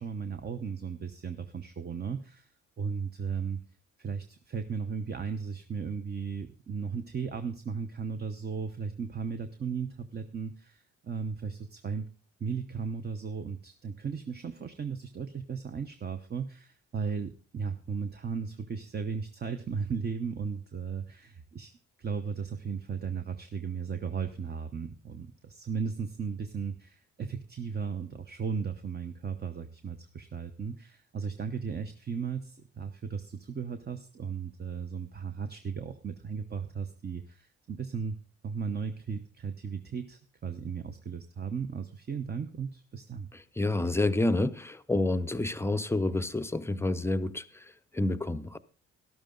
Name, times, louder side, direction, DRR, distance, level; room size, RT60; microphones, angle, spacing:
voice 1, 0.0-2.5 2.8-3.6 4.0-12.0 12.4-21.7 22.0-38.2 38.4-43.3, right 6 dB, 35° right, 0.9 m, -36 dB
voice 2, 43.6-47.7 47.9-48.6, left 2 dB, 10° left, 0.6 m, -28 dB
12.5 x 12.0 x 3.8 m
cardioid pair, 90°, 30 cm